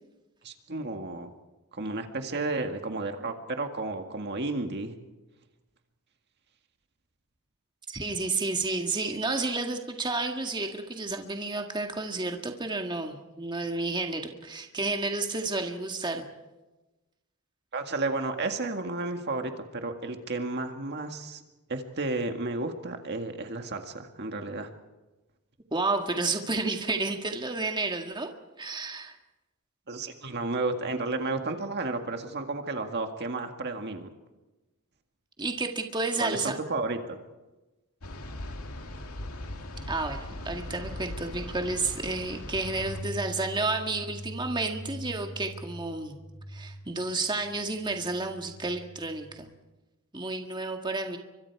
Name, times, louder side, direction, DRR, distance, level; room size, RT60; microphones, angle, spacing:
voice 1, 0.4-1.3 1.7-4.9 17.7-21.4 21.7-24.7 29.9-34.1 36.2-37.2, right 3 dB, 50° right, 5 dB, 1.9 m, -32 dB
voice 2, 7.9-16.2 25.7-28.3 28.6-29.1 35.4-36.5 39.9-46.2 46.5-49.5 50.1-51.2, right 3 dB, 20° right, 3 dB, 1.9 m, -31 dB
sound 1, 38.0-43.0, left 1 dB, 80° left, 2.4 m, -39 dB
sound 2, 42.6-49.4, right 1 dB, 5° left, 4.6 m, -43 dB
29.5 x 24.5 x 4.8 m, 1.1 s
head